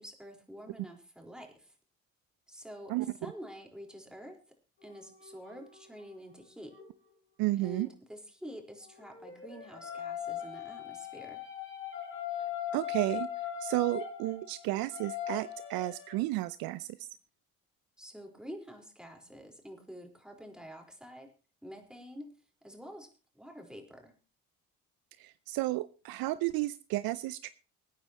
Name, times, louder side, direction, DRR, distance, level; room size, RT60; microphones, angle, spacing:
voice 1, 0.0-1.7 2.5-4.4 4.8-6.7 7.6-11.4 18.0-21.3 21.6-22.3 22.6-23.1 23.3-24.1, equal, ahead, 2 dB, 4.5 m, -48 dB
sound 1, 4.8-6.9 8.8-16.2, left 9 dB, 30° left, 4.6 m, -40 dB
voice 2, 7.4-7.9 12.7-13.3 13.6-17.1 25.2-27.6, right 18 dB, 60° right, 16 dB, 0.6 m, -32 dB
25.0 x 9.5 x 3.0 m, 0.34 s
hypercardioid pair, 55°, 41 cm